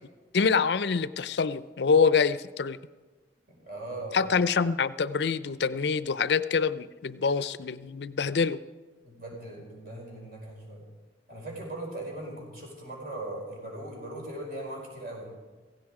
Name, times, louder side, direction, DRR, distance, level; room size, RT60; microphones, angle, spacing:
voice 1, 0.3-2.8 4.1-8.6, left 5 dB, 70° left, 15 dB, 0.5 m, -25 dB
voice 2, 3.5-4.3 9.0-10.9 11.3-15.3, right 1 dB, 50° right, -1 dB, 5.1 m, -39 dB
16.5 x 16.0 x 4.8 m, 1.3 s
head